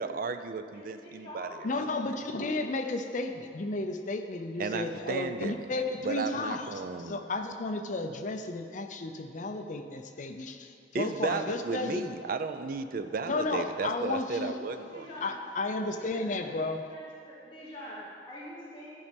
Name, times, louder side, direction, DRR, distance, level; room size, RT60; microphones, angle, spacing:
voice 1, 0.0-1.5 4.6-5.6 6.0-7.2 10.9-15.1, right 4 dB, 55° right, 9 dB, 0.4 m, -34 dB
voice 2, 0.7-1.7 14.9-15.4 15.9-16.6 16.9-19.0, equal, 25° left, -8 dB, 1.3 m, -46 dB
voice 3, 1.6-12.0 13.3-14.6 15.2-16.8, left 2 dB, 45° left, 6 dB, 0.6 m, -33 dB
12.5 x 5.4 x 5.2 m, 2.4 s
head